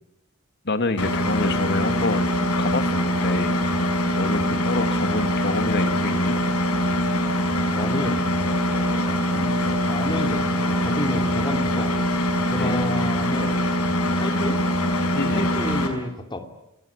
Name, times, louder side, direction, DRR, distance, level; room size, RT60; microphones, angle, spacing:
voice 1, 0.6-3.5 4.2-6.4 12.6-13.0 15.1-15.5, left 2 dB, 50° left, 9 dB, 2.1 m, -27 dB
Engine, 1.0-15.9, equal, 85° left, 5.5 m, -23 dB
voice 2, 7.7-8.3 8.7-13.6 14.1-14.6 15.3-16.4, left 1 dB, 20° left, 5 dB, 2.8 m, -31 dB
28.0 x 19.5 x 9.8 m, 0.90 s
head